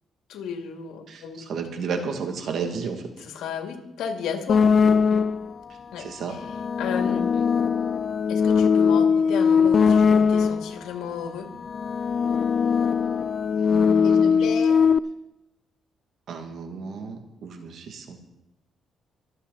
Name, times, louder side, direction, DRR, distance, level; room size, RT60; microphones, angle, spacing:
voice 1, 0.3-1.4 3.3-4.6 5.1-5.2 5.9-6.1 6.8-7.5 8.3-11.5 14.0-14.8, left 7 dB, 85° left, 4 dB, 2.3 m, -33 dB
voice 2, 1.1-3.1 6.0-6.4 13.6-14.4 16.3-18.2, right 5 dB, 65° right, 5 dB, 2.2 m, -33 dB
sound 1, 4.5-5.6 6.3-10.8 11.6-15.0, left 6 dB, 45° left, 0.4 m, -20 dB
24.0 x 8.2 x 4.0 m, 0.88 s
cardioid pair, 90°, 0 cm